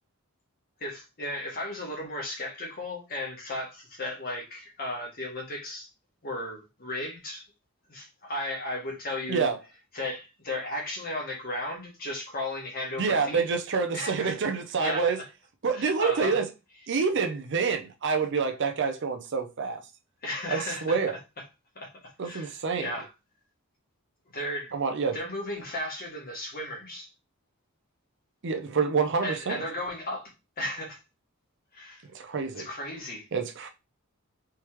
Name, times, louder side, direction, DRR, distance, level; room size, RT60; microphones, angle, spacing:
voice 1, 0.8-5.9 6.2-7.4 7.9-9.5 9.9-13.4 13.9-14.3 14.8-15.1 15.7-16.4 20.2-21.2 21.7-21.9 22.2-23.1 24.3-24.7 25.1-27.1 29.2-30.3 30.6-31.0 31.7-32.0 32.6-33.3, left 1 dB, 45° left, 1.4 m, -35 dB
voice 2, 13.0-15.2 15.6-16.5 16.9-19.8 20.5-21.2 22.2-22.9 24.7-25.2 28.4-29.6 32.1-32.7 33.3-33.7, right 5 dB, 55° right, 0.6 m, -27 dB
3.5 x 3.1 x 3.0 m
head